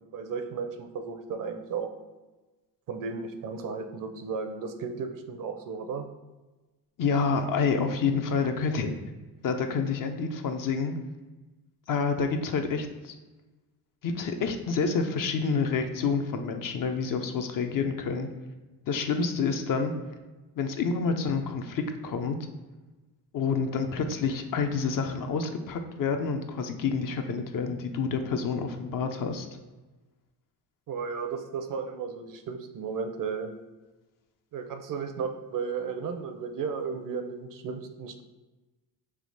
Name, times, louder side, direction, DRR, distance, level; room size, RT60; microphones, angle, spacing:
voice 1, 0.1-1.9 2.9-6.1 30.9-33.5 34.5-38.2, right 5 dB, 55° right, 7 dB, 0.5 m, -34 dB
voice 2, 7.0-8.9 9.4-11.0 11.9-13.2 14.0-18.3 18.9-19.9 20.6-22.4 23.3-29.5, left 5 dB, 55° left, 6 dB, 0.5 m, -28 dB
3.5 x 2.8 x 3.9 m, 1.2 s
cardioid pair, 90°, 40 cm